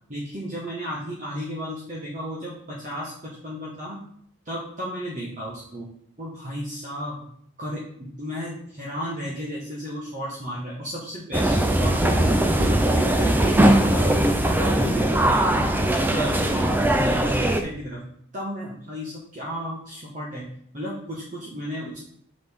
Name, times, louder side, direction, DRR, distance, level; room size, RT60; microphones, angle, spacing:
voice 1, 0.1-4.0 4.4-5.9 6.2-7.3 7.6-13.6 13.9-15.8 16.1-18.0 18.3-22.0, equal, 35° right, -5 dB, 1.1 m, -33 dB
sound 1, 11.3-17.6, right 1 dB, 10° right, 0.4 m, -20 dB
6.2 x 5.2 x 3.5 m, 0.66 s
head